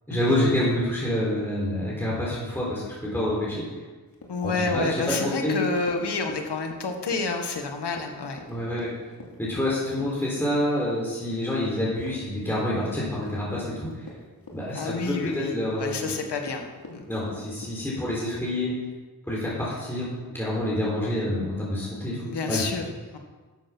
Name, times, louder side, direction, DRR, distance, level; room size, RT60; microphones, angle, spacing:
voice 1, 0.1-3.7 4.4-5.6 8.5-8.9 9.4-14.1 14.5-16.1 17.1-18.7 19.3-22.2 22.5-22.7, left 1 dB, 5° left, -6 dB, 3.8 m, -27 dB
Run, 4.1-18.2, left 3 dB, 60° left, 2.6 m, -45 dB
voice 2, 4.3-8.4 9.8-9.9 14.7-15.5 15.8-16.6 16.9-17.0 21.1-21.3 22.2-22.8 23.1-23.2, left 3 dB, 85° left, 4 dB, 1.6 m, -29 dB
11.0 x 7.7 x 6.0 m, 1.3 s
cardioid pair, 50°, 39 cm